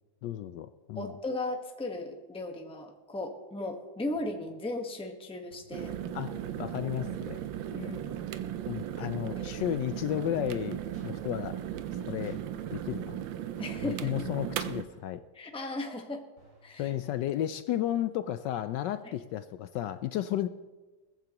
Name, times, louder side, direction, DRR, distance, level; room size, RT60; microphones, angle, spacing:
voice 1, 0.2-1.1 6.1-7.4 8.7-11.6 12.1-12.4 12.7-13.2 13.8-15.2 16.8-20.5, left 12 dB, 75° left, 12 dB, 1.1 m, -33 dB
voice 2, 0.9-5.9 7.7-8.2 9.0-9.1 9.3-9.6 13.6-14.3 15.3-16.2 16.6-16.9, left 2 dB, 5° left, 3 dB, 0.9 m, -37 dB
sound 1, 4.2-4.6 5.5-5.9 6.9-7.2 8.3-8.6 9.6-9.9 10.9-11.2 12.2-12.5 13.6-13.9 14.9-15.2 16.4-16.7, right 2 dB, 40° right, 3.6 m, -60 dB
sound 2, 5.7-14.8, right 10 dB, 80° right, 1.4 m, -36 dB
19.5 x 14.5 x 3.0 m, 1.2 s
omnidirectional pair, 2.1 m